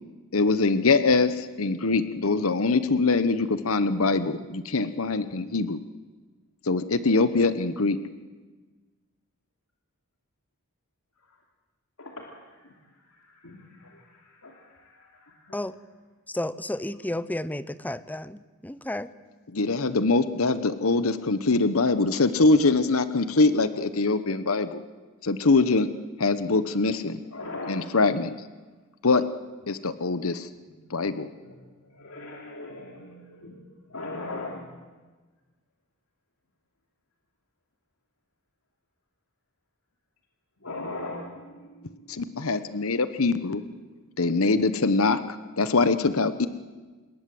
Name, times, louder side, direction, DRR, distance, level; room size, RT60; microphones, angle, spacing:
voice 1, 0.3-5.8 6.7-8.0 19.5-24.8 25.2-25.9 26.2-27.2 27.7-28.3 29.0-29.2 29.7-30.5 30.9-31.3 42.1-43.6 44.2-46.5, left 3 dB, 70° left, 13 dB, 1.1 m, -23 dB
voice 2, 12.0-12.7 13.2-15.6 21.1-21.2 27.3-27.9 30.7-30.8 31.3-31.5 31.8-34.7 40.6-42.8 43.4-43.5, left 2 dB, 90° left, 0 dB, 2.9 m, -40 dB
voice 3, 16.3-19.1, left 1 dB, 10° left, 15 dB, 0.7 m, -32 dB
26.0 x 21.0 x 7.8 m, 1.3 s
head